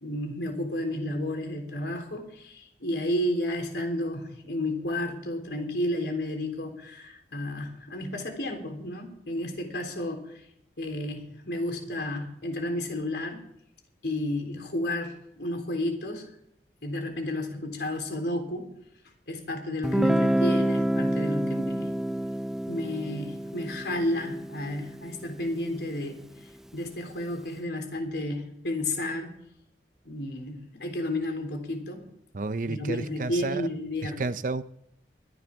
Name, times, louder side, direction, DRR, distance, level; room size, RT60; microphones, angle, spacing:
voice 1, 0.0-10.5 10.8-13.4 14.0-16.3 16.8-18.7 19.3-21.9 22.7-26.2 26.7-29.4 30.0-32.1 32.7-34.2, left 1 dB, 75° left, 3.7 m, -32 dB
Guitar, 19.8-25.6, right 1 dB, ahead, 0.4 m, -28 dB
voice 2, 32.3-33.7 34.0-34.6, right 3 dB, 50° right, 0.6 m, -31 dB
23.0 x 10.5 x 3.6 m
head